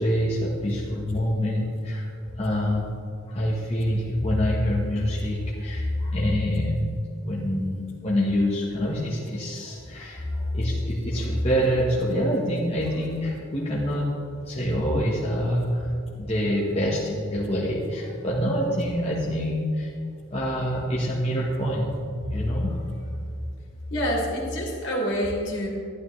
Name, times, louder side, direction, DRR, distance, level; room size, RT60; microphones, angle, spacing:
voice 1, 0.0-2.9 3.3-7.0 7.2-14.1 14.4-19.9 20.3-21.9 22.3-23.1, equal, 30° left, -6 dB, 1.2 m, -26 dB
voice 2, 23.9-25.7, equal, 60° left, -4 dB, 2.8 m, -27 dB
12.0 x 11.5 x 3.2 m, 2.5 s
head